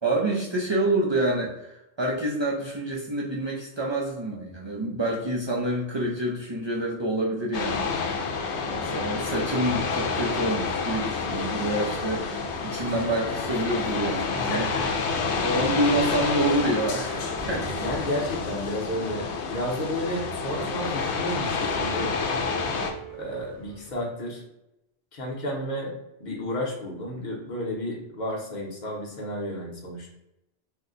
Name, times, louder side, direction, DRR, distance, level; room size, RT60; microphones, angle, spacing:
voice 1, 0.0-14.7 15.4-17.7, right 1 dB, 50° right, -4 dB, 0.3 m, -27 dB
sound 1, 7.5-22.9, left 4 dB, 90° left, 0.9 m, -29 dB
sound 2, 14.0-24.0, right 2 dB, 30° right, 0.8 m, -46 dB
voice 2, 14.3-15.1 17.8-22.1 23.2-24.4 25.1-25.9 26.2-30.1, left 1 dB, 45° left, -2 dB, 0.9 m, -32 dB
2.7 x 2.1 x 3.7 m, 0.88 s
omnidirectional pair, 1.1 m